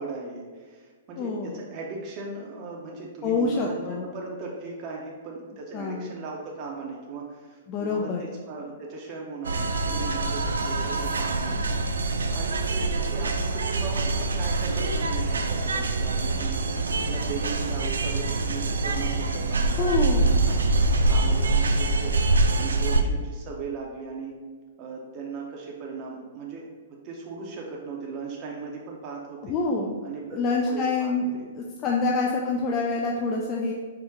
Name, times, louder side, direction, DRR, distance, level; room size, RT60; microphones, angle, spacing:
voice 1, 0.0-16.6 16.9-24.4 24.8-29.6 30.0-30.4 30.7-31.5 32.0-32.2, right 4 dB, 35° right, -2 dB, 0.6 m, -38 dB
voice 2, 1.2-1.6 3.2-4.1 5.7-6.1 7.7-8.2 19.8-20.4 29.4-30.0 30.3-33.7, left 3 dB, 30° left, -1 dB, 0.4 m, -26 dB
sound 1, 9.4-23.0, right 2 dB, 85° right, 0.3 m, -25 dB
4.6 x 2.1 x 3.5 m, 1.5 s
hypercardioid pair, 125°, 0 cm